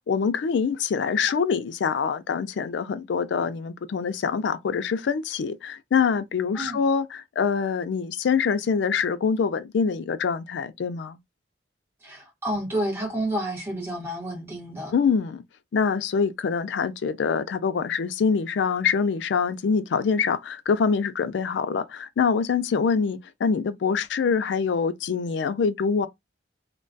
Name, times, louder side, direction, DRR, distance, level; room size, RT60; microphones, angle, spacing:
voice 1, 0.1-11.2 14.9-15.4 15.7-26.1, left 6 dB, 75° left, 0.3 m, -25 dB
voice 2, 12.0-15.0, right 1 dB, 15° right, 1.0 m, -30 dB
2.2 x 2.2 x 2.5 m
head